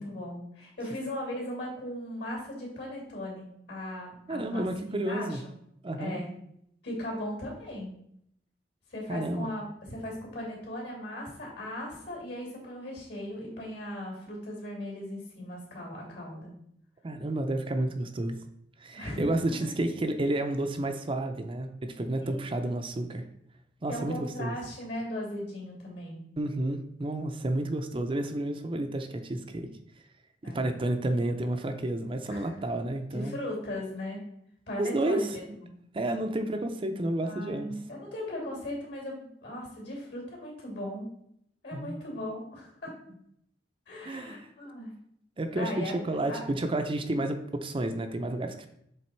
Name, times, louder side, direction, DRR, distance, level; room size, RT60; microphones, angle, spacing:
voice 1, 0.0-5.5 6.0-6.3 6.8-7.9 8.9-16.5 18.9-19.6 22.2-22.5 23.9-26.2 30.4-30.8 32.3-32.6 33.1-34.2 34.7-35.7 37.2-39.1 39.4-41.1 41.6-42.9 43.9-44.9 45.5-45.9 46.3-46.4, left 1 dB, 65° left, -2 dB, 2.7 m, -38 dB
voice 2, 4.3-5.4 5.8-6.2 9.1-9.5 17.0-18.4 18.8-23.2 23.8-24.6 26.4-29.7 30.4-33.4 34.8-35.4 35.9-37.7 41.7-42.0 44.0-44.5 45.4-48.7, right 1 dB, 30° right, 6 dB, 0.5 m, -31 dB
7.2 x 3.5 x 4.4 m, 0.73 s
head